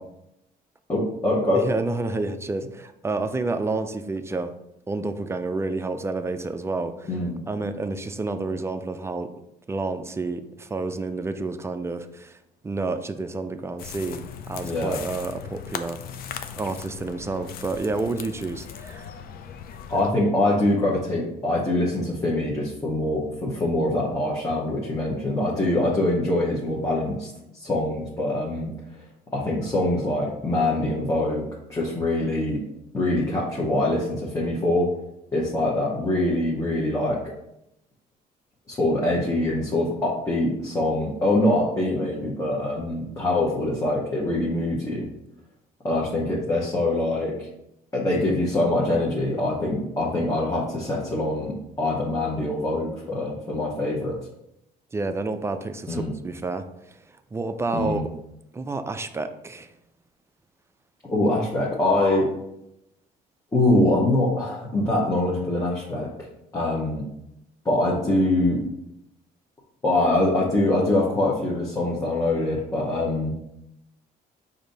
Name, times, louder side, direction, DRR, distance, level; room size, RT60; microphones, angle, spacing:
voice 1, 0.9-1.7 7.1-7.5 14.6-15.0 19.9-28.7 29.3-32.6 32.9-34.9 35.3-37.2 38.7-45.1 45.8-47.5 47.9-54.2 55.9-56.1 57.7-58.0 61.1-62.3 63.5-66.3 66.5-67.1 67.6-68.6 69.8-73.3, left 1 dB, 20° left, -4 dB, 0.9 m, -24 dB
voice 2, 1.5-4.5 4.9-7.1 7.5-9.3 9.7-12.4 12.6-16.0 16.6-19.1 54.9-58.1 58.5-59.7, right 3 dB, 15° right, 9 dB, 0.3 m, -29 dB
sound 1, 13.8-20.1, left 8 dB, 60° left, 0.5 m, -38 dB
5.0 x 2.7 x 4.0 m, 0.83 s
cardioid pair, 110°, 17 cm